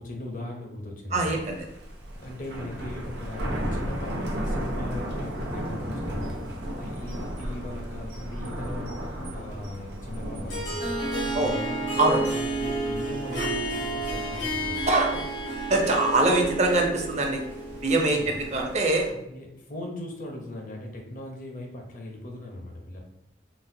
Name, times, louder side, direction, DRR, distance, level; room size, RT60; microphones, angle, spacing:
voice 1, 0.0-1.4 2.1-6.4 6.7-11.9 12.3-14.9 18.0-18.3 19.1-23.0, left 1 dB, 50° left, 1 dB, 0.6 m, -39 dB
voice 2, 1.1-1.6 11.3-11.5 11.9-12.2 13.3-13.5 14.9-15.2 15.7-17.4 17.8-18.2 18.5-19.1, right 2 dB, 40° right, 2 dB, 0.5 m, -23 dB
Thunder, 1.3-19.1, equal, 80° right, 0.7 m, -35 dB
Harp, 10.5-18.9, right 1 dB, 80° left, 1.1 m, -31 dB
3.9 x 2.1 x 2.6 m, 0.81 s
head